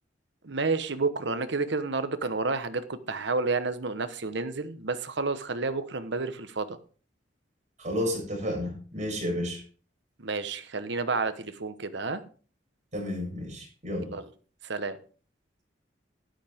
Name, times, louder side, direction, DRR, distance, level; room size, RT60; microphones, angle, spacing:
voice 1, 0.4-6.8 10.2-12.2 14.1-14.2 14.6-15.0, right 3 dB, 70° right, 1.2 m, -30 dB
voice 2, 7.8-9.6 12.9-14.1, left 1 dB, 40° right, 7.2 m, -31 dB
12.5 x 11.5 x 3.6 m
head